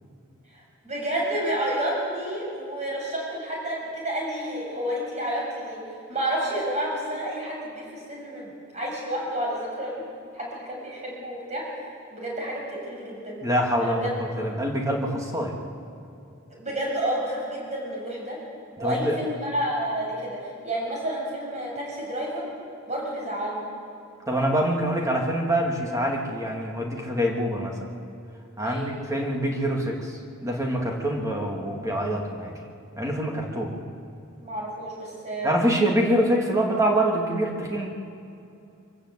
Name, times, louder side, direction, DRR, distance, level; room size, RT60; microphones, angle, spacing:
voice 1, 0.5-5.8 6.1-10.1 10.3-11.7 12.1-13.4 13.8-14.2 16.5-18.4 18.8-22.4 22.9-23.7 28.6-28.9 34.4-35.5, right 1 dB, 30° right, -3 dB, 7.0 m, -30 dB
voice 2, 13.4-15.6 18.8-19.2 24.3-27.9 28.6-32.6 33.0-33.8 35.4-37.9, right 1 dB, 15° right, 0 dB, 2.5 m, -25 dB
25.0 x 15.0 x 8.2 m, 2.6 s
head